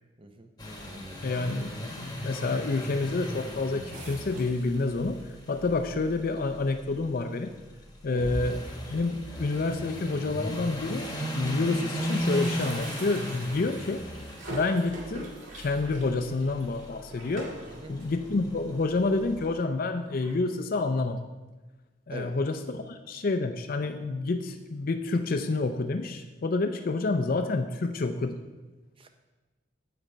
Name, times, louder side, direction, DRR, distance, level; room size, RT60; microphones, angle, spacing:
voice 1, 0.2-0.5 0.9-1.2 8.1-8.3 17.6-18.0 22.1-22.3 29.0-29.1, right 2 dB, 25° right, 6 dB, 0.7 m, -44 dB
sound 1, 0.6-19.4, equal, 20° left, 1.2 m, -37 dB
voice 2, 1.2-5.2 5.5-7.5 8.0-8.6 8.9-14.0 14.5-17.5 17.9-21.2 22.1-28.4, left 3 dB, 45° left, 7 dB, 0.4 m, -28 dB
sound 2, 3.9-5.1 5.6-5.7 5.9-6.0 6.9-7.0 7.4-7.6 7.9-8.0 9.3-9.4 10.1-10.2 10.5-11.7 11.9-20.4, right 2 dB, 65° right, 2.3 m, -45 dB
9.1 x 7.6 x 4.4 m, 1.2 s
head